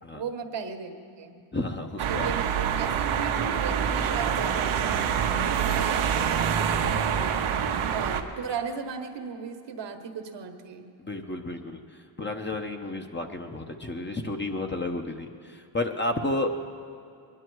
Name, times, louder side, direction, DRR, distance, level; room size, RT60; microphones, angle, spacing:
voice 1, 0.1-1.4 2.1-7.4 7.9-10.9, right 6 dB, 60° right, 6 dB, 1.3 m, -37 dB
voice 2, 1.5-2.3 11.0-11.8 12.2-16.5, left 2 dB, 20° left, 4 dB, 1.1 m, -31 dB
sound 1, 2.0-8.2, right 8 dB, 80° right, 1.0 m, -26 dB
21.0 x 11.0 x 4.7 m, 2.4 s
cardioid pair, 70°, 49 cm